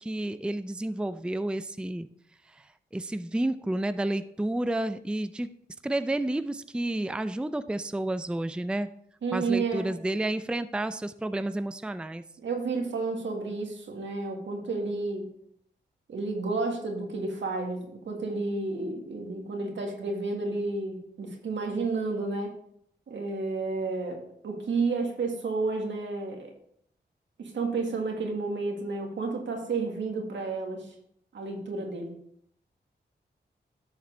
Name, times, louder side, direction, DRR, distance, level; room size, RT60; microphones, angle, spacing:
voice 1, 0.0-2.1 2.5-2.7 2.9-5.5 5.8-8.9 9.3-12.2, right 1 dB, 5° right, 12 dB, 0.4 m, -30 dB
voice 2, 9.2-9.9 12.4-15.3 16.1-22.5 23.1-24.2 24.4-26.5 27.4-30.9 31.3-32.1, right 3 dB, 85° right, 2 dB, 1.8 m, -31 dB
11.5 x 6.6 x 3.3 m, 0.70 s
cardioid pair, 55°, 19 cm